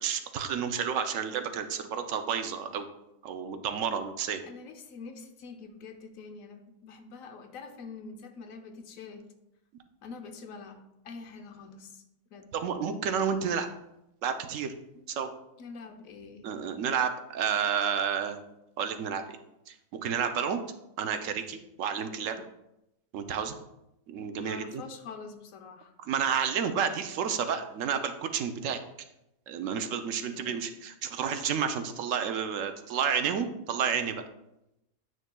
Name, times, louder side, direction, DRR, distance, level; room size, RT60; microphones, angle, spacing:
voice 1, 0.0-2.9 3.2-4.4 12.5-13.7 14.2-14.7 15.1-15.3 16.4-18.4 18.8-19.4 19.7-20.6 21.0-22.4 23.1-23.6 24.1-24.8 26.0-28.8 29.5-34.2, right 7 dB, 70° right, 8 dB, 0.9 m, -30 dB
voice 2, 4.5-9.3 10.0-12.0 12.3-12.5 14.9-15.1 15.6-16.5 24.4-25.9 30.3-30.6, left 4 dB, 75° left, 6 dB, 1.1 m, -45 dB
9.0 x 6.4 x 2.2 m, 0.87 s
omnidirectional pair, 1.4 m